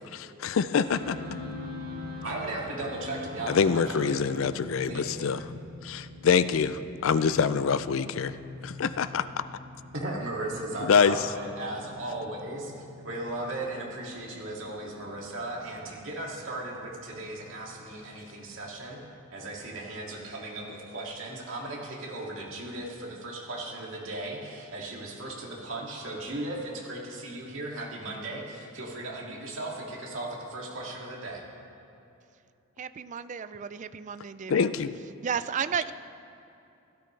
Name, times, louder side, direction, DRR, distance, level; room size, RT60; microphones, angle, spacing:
voice 1, 0.1-1.2 3.5-5.4 5.8-8.4 8.6-9.3 10.8-11.2 34.5-35.0, left 6 dB, 65° left, 14 dB, 0.4 m, -25 dB
sound 1, 0.8-20.8, left 2 dB, 80° right, 2.6 m, -44 dB
voice 2, 2.2-4.1 4.8-5.1 8.3-8.8 9.9-12.7 13.0-19.0 19.3-31.4, right 2 dB, 60° right, -3 dB, 2.4 m, -37 dB
voice 3, 32.8-34.7 35.2-35.9, right 7 dB, 35° right, 13 dB, 0.3 m, -33 dB
16.5 x 13.0 x 3.3 m, 2.7 s
head